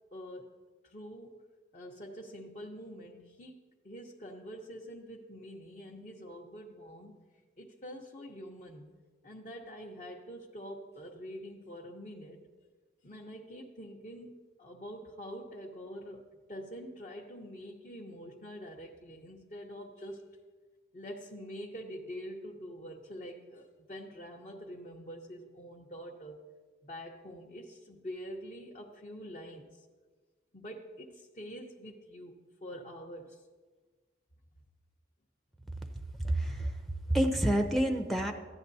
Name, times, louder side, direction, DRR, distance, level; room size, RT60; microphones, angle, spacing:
voice 1, 0.1-1.4 1.7-3.6 3.8-7.1 7.6-8.9 9.2-12.4 13.0-16.2 16.5-20.3 20.9-26.4 26.8-29.8 30.5-33.4, equal, 40° left, -2 dB, 0.8 m, -45 dB
voice 2, 36.2-36.7 37.1-38.3, right 1 dB, ahead, 5 dB, 0.5 m, -28 dB
15.0 x 10.5 x 2.7 m, 1.4 s
head